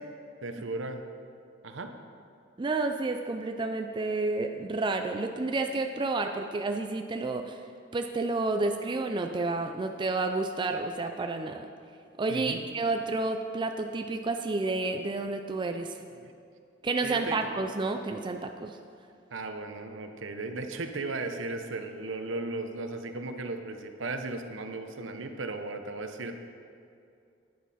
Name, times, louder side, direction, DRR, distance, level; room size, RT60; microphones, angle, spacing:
voice 1, 0.4-1.0 1.6-1.9 12.3-12.6 16.2-16.3 17.0-17.4 19.3-26.3, right 3 dB, 70° right, 6 dB, 0.8 m, -36 dB
voice 2, 2.6-7.6 7.9-11.7 12.2-16.0 16.8-18.8, right 3 dB, 25° right, 5 dB, 0.4 m, -30 dB
11.0 x 9.5 x 4.2 m, 2.5 s
head